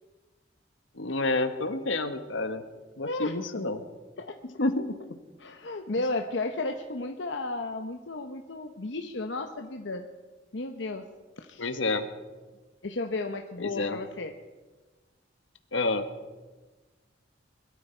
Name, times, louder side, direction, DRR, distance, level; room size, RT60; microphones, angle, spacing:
voice 1, 0.9-2.6 3.0-3.8 4.6-5.2 11.6-12.1 13.6-14.0 15.7-16.1, left 2 dB, 85° left, 9 dB, 1.3 m, -29 dB
voice 2, 3.0-3.4 4.2-4.4 5.4-10.0 10.5-11.0 11.4-11.7 12.8-14.3, left 2 dB, 65° left, 5 dB, 0.9 m, -33 dB
21.5 x 13.0 x 4.5 m, 1.3 s
head